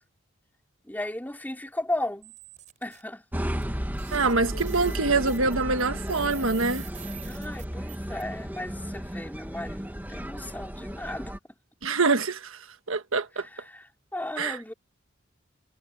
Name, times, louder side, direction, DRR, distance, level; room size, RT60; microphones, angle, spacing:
voice 1, 0.8-2.3 2.8-3.6 7.2-11.4 13.3-14.7, left 1 dB, 10° left, 3.5 m, -35 dB
sound 1, 2.2-3.0 3.6-3.7 4.0-8.2, right 10 dB, 40° right, 4.9 m, -46 dB
sound 2, 3.3-11.4, equal, 10° right, 1.7 m, -34 dB
voice 2, 4.1-6.8 11.8-12.6 12.9-13.4 14.4-14.6, right 3 dB, 75° right, 1.5 m, -25 dB
sound 3, 4.5-5.8 6.2-6.7, left 2 dB, 75° left, 5.7 m, -51 dB
head